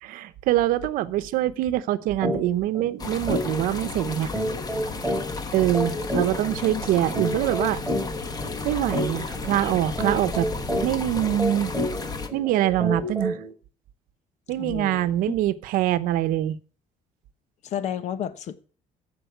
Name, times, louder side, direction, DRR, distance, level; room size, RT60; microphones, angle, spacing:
voice 1, 0.0-4.3 5.5-7.8 8.6-10.5 10.8-11.7 12.3-13.4 14.5-16.6, right 13 dB, 70° right, 0.9 m, -24 dB
sound 1, 2.2-2.4 2.7-2.9 3.3-13.5, equal, ahead, 3.8 m, -30 dB
sound 2, 3.0-12.3, left 4 dB, 25° left, 1.3 m, -33 dB
voice 2, 14.6-15.1 17.6-18.6, left 9 dB, 50° left, 1.1 m, -31 dB
14.5 x 5.4 x 8.1 m
cardioid pair, 145°, 15 cm